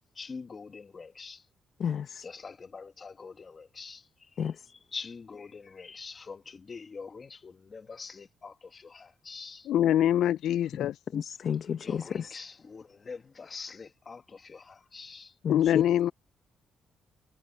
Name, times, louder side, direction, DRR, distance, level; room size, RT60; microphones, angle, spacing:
voice 1, 0.2-1.5 2.2-9.7 11.8-15.3, left 5 dB, 35° left, 1.8 m, -45 dB
voice 2, 1.8-2.3 4.4-4.7 11.1-12.4 15.4-15.8, left 8 dB, 60° left, 1.2 m, -32 dB
voice 3, 9.7-11.0 15.5-16.1, left 11 dB, 75° left, 0.4 m, -24 dB
cardioid pair, 90°, 0 cm